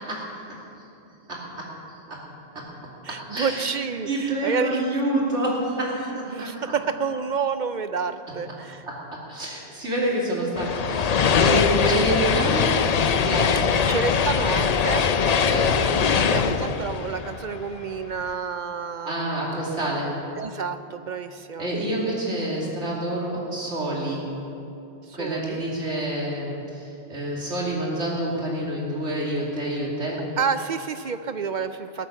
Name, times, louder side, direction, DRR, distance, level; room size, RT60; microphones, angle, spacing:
voice 1, 1.3-1.7 3.1-3.6 4.1-6.5 8.9-12.8 13.1-13.7 15.4-16.6 19.0-20.2 21.6-24.2 25.1-26.5 26.8-30.2, right 1 dB, 75° right, -4 dB, 3.1 m, -28 dB
voice 2, 3.0-4.8 6.3-8.8 11.5-12.0 13.1-13.2 13.9-15.1 16.2-19.2 20.4-21.7 25.1-25.7 29.8-29.9 30.4-32.1, right 6 dB, 55° right, 10 dB, 0.5 m, -29 dB
sound 1, 10.6-18.0, left 6 dB, 50° left, 0.5 m, -22 dB
18.5 x 8.4 x 6.9 m, 2.8 s
omnidirectional pair, 1.2 m